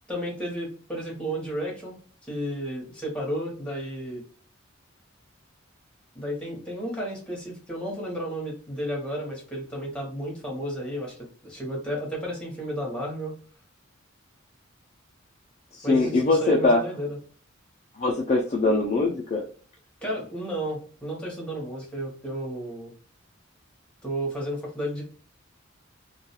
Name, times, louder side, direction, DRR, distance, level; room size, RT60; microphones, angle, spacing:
voice 1, 0.1-2.0 2.3-4.2 6.1-13.3 15.8-17.1 20.0-22.9 24.0-25.0, equal, 5° left, -3 dB, 0.9 m, -32 dB
voice 2, 15.7-16.8 17.9-19.4, left 2 dB, 35° left, -1 dB, 0.4 m, -22 dB
2.3 x 2.3 x 2.8 m, 0.42 s
head